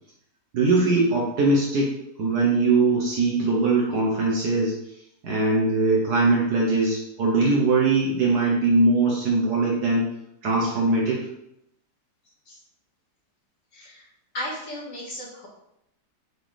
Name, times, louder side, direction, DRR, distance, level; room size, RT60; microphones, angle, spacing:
voice 1, 0.5-1.9 2.2-4.8 5.2-10.0 10.4-11.3, right 3 dB, 65° right, -3 dB, 1.5 m, -21 dB
voice 2, 13.7-15.5, equal, 45° left, -3 dB, 1.9 m, -35 dB
6.1 x 4.7 x 3.4 m, 0.79 s
omnidirectional pair, 1.9 m